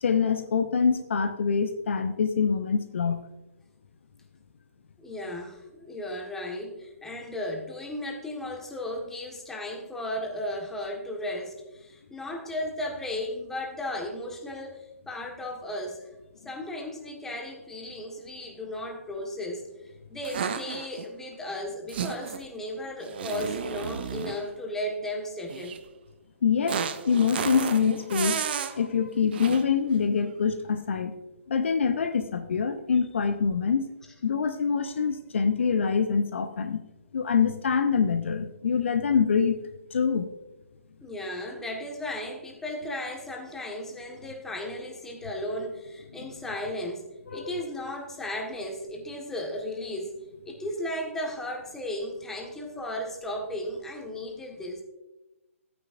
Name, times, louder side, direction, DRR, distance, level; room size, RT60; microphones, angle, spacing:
voice 1, 0.0-3.2 26.4-31.1 31.5-33.9 34.2-36.8 37.1-39.6 39.9-40.3 47.3-47.4, left 6 dB, 55° left, 9 dB, 0.7 m, -25 dB
voice 2, 5.0-16.1 16.4-25.8 41.0-47.0 47.3-50.2 50.4-54.8, left 1 dB, 5° left, 0 dB, 1.5 m, -35 dB
sound 1, 20.2-21.0 21.9-22.5 23.0-24.5 25.5-25.8 26.7-28.8 29.3-29.7, right 7 dB, 45° right, 0.7 m, -32 dB
14.0 x 9.5 x 2.6 m, 0.99 s
figure-of-eight pair, 130°, 8 cm